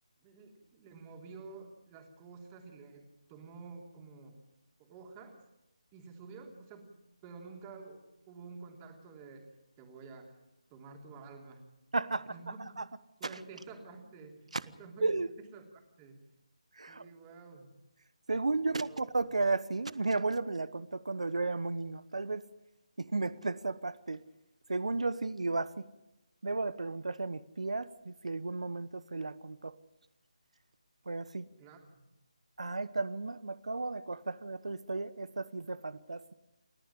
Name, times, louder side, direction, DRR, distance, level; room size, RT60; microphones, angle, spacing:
voice 1, 0.2-4.4 4.8-5.4 5.9-6.9 7.2-9.5 9.8-10.3 10.7-11.6 12.3-12.7 13.2-16.2 16.9-17.7 18.6-19.0 31.6-31.9, right 4 dB, 20° right, 2 dB, 3.2 m, -50 dB
voice 2, 11.9-12.3 12.8-12.9 14.5-14.6 15.0-15.3 16.8-17.0 18.3-22.4 23.0-24.2 24.7-25.7 26.4-29.7 31.1-31.4 32.6-36.3, right 3 dB, 70° right, 16 dB, 1.0 m, -34 dB
29.0 x 10.5 x 10.0 m, 0.92 s
figure-of-eight pair, 155°, 4 cm